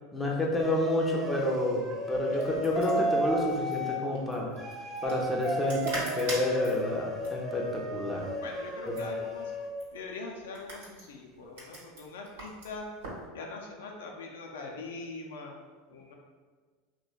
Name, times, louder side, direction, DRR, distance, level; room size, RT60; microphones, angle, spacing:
voice 1, 0.1-4.5 5.0-8.3 8.9-9.0, left 1 dB, 15° left, -2 dB, 0.5 m, -29 dB
sound 1, 0.6-4.0 4.6-9.7, right 1 dB, 25° right, 0.7 m, -34 dB
sound 2, 2.1-13.3, right 1 dB, 90° right, 1.1 m, -43 dB
voice 2, 8.4-9.5 9.9-12.9 13.3-15.5 15.9-16.1, left 3 dB, 85° left, 1 dB, 0.4 m, -42 dB
3.0 x 2.2 x 2.3 m, 1.5 s
hypercardioid pair, 105°, 0 cm